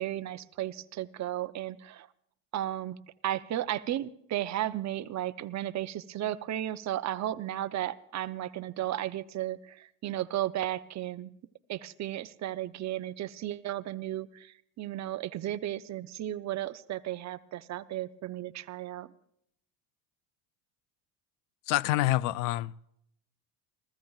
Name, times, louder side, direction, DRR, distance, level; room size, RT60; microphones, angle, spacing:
voice 1, 0.0-2.1 2.5-3.0 3.2-11.3 11.7-19.1, right 13 dB, 40° right, 0.7 m, -34 dB
voice 2, 21.7-22.7, left 16 dB, 90° left, 0.6 m, -27 dB
29.0 x 15.0 x 2.4 m
cardioid pair, 125°, 45 cm